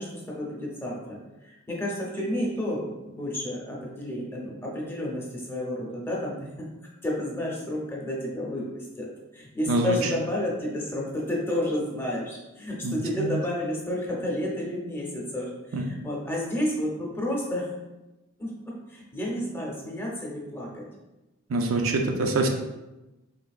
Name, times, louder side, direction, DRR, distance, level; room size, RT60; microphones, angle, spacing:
voice 1, 0.0-6.7 7.0-17.7 18.4-20.9, left 1 dB, 10° left, -3 dB, 0.6 m, -31 dB
voice 2, 9.7-10.1 12.8-13.4 15.7-15.9 21.5-22.5, right 2 dB, 75° right, 3 dB, 0.5 m, -25 dB
4.0 x 3.3 x 2.4 m, 1.0 s
head